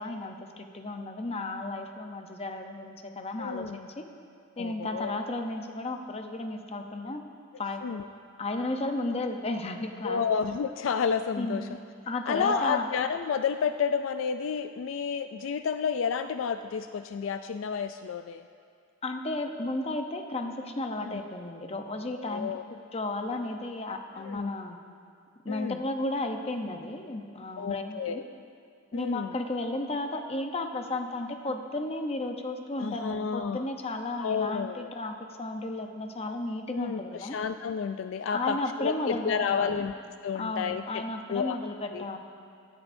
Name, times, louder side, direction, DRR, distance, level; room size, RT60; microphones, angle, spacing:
voice 1, 0.0-4.1 4.6-7.2 7.6-7.8 8.4-10.2 11.4-11.7 12.1-12.9 19.0-22.6 22.9-24.8 25.4-28.2 28.9-37.4 38.3-39.8 40.3-42.2, left 2 dB, 30° left, 5 dB, 0.8 m, -33 dB
voice 2, 3.4-3.8 4.6-5.2 7.8-8.1 10.0-11.7 12.3-18.4 21.0-21.2 22.1-22.6 24.2-24.5 25.5-25.8 27.6-28.2 28.9-29.3 32.8-33.7 34.2-34.9 36.7-39.9 40.2-41.0 41.3-41.6 41.9-42.0, left 6 dB, 70° left, 9 dB, 0.3 m, -31 dB
17.0 x 13.5 x 2.7 m, 2.3 s
head